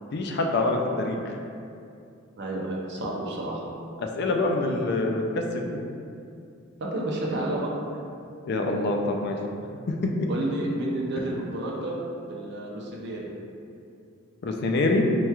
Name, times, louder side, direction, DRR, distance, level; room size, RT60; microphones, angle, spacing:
voice 1, 0.1-1.4 4.0-5.6 8.5-9.4 9.9-10.0 14.4-15.0, left 2 dB, 50° left, 2 dB, 0.3 m, -25 dB
voice 2, 2.4-3.6 6.8-7.7 10.3-13.3, right 1 dB, 50° right, -3 dB, 0.6 m, -31 dB
4.5 x 3.0 x 2.3 m, 2.5 s
head